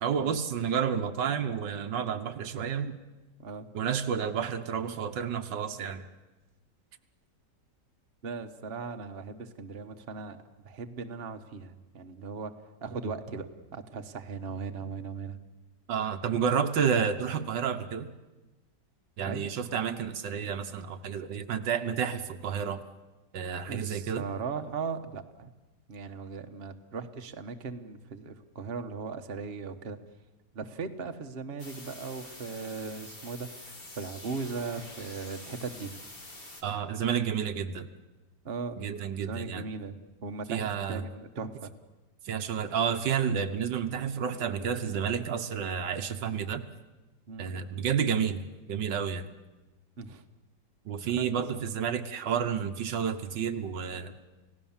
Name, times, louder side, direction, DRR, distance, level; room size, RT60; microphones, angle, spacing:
voice 1, 0.0-3.0 3.7-6.1 15.9-18.1 19.2-22.8 23.3-24.2 36.6-37.9 38.8-39.6 40.5-41.1 42.3-46.7 47.4-48.4 48.7-49.3 50.9-54.1, right 7 dB, 80° right, 8 dB, 1.7 m, -30 dB
voice 2, 8.2-10.4 10.6-12.5 12.8-13.5 13.7-15.4 19.2-19.5 23.7-25.5 25.9-30.0 30.5-35.9 38.4-38.8 39.2-41.7 45.2-45.3 47.3-47.5 50.0-50.2 51.1-51.3, right 5 dB, 35° right, 6 dB, 1.3 m, -38 dB
sound 1, 31.6-36.6, left 2 dB, 30° left, 2.7 m, -46 dB
29.5 x 17.0 x 7.3 m, 1.1 s
omnidirectional pair, 1.9 m